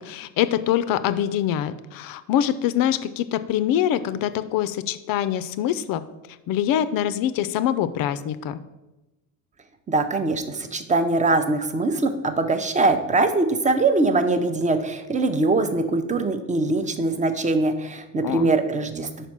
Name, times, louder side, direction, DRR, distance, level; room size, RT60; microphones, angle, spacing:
voice 1, 0.0-6.0 6.5-8.6 18.2-18.5, left 10 dB, 45° left, 14 dB, 0.5 m, -24 dB
voice 2, 9.9-19.3, right 3 dB, 15° right, 8 dB, 0.6 m, -22 dB
5.4 x 4.2 x 5.9 m, 1.0 s
hypercardioid pair, 80°, 49 cm